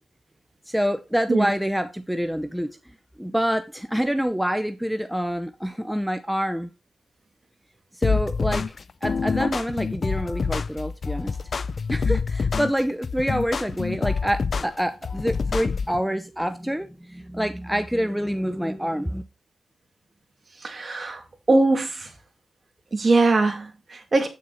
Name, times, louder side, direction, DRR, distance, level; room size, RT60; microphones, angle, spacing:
voice 1, 0.7-2.7 3.2-6.7 7.9-8.7 9.0-11.4 11.9-19.2, equal, 5° right, 0.8 m, -26 dB
sound 1, 8.0-16.0, left 5 dB, 55° left, 0.5 m, -26 dB
voice 2, 20.6-21.2 21.5-22.1 22.9-24.3, right 3 dB, 45° right, 2.3 m, -21 dB
8.6 x 6.6 x 4.0 m
cardioid pair, 70°, 0 cm